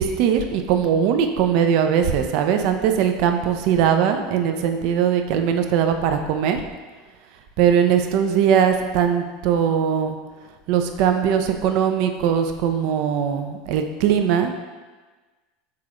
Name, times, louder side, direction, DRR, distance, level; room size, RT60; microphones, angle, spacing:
voice 1, 0.0-6.6 7.6-10.2 10.7-14.5, right 8 dB, 55° right, 6 dB, 0.4 m, -20 dB
5.8 x 3.5 x 2.4 m, 1.3 s
figure-of-eight pair, 80°, 0 cm